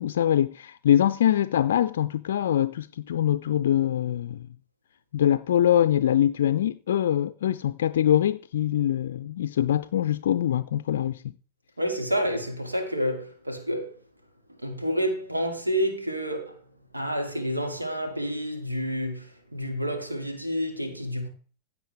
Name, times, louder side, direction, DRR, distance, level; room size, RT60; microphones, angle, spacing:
voice 1, 0.0-4.5 5.1-11.2, left 11 dB, 60° left, 0.4 m, -23 dB
voice 2, 11.8-14.0 14.6-16.6 16.9-21.3, equal, 85° right, 2.3 m, -29 dB
15.5 x 7.9 x 3.4 m
figure-of-eight pair, 90°, 0 cm